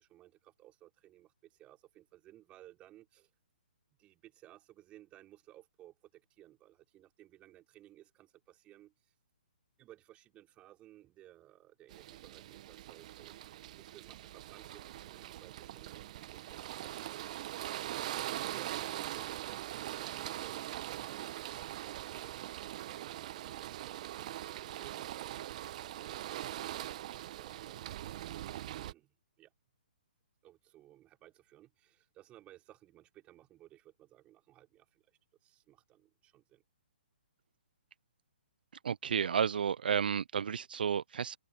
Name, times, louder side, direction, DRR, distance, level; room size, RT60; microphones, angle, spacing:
voice 1, 0.0-3.3 4.0-8.9 9.8-13.4 13.7-17.7 18.4-22.4 22.7-28.2 28.7-29.5 30.4-35.0 35.4-36.6, right 14 dB, 20° right, 5.3 m, -59 dB
sound 1, 11.9-28.9, right 13 dB, 45° right, 1.1 m, -42 dB
voice 2, 38.8-41.4, right 7 dB, 65° right, 0.6 m, -32 dB
figure-of-eight pair, 130°, 5 cm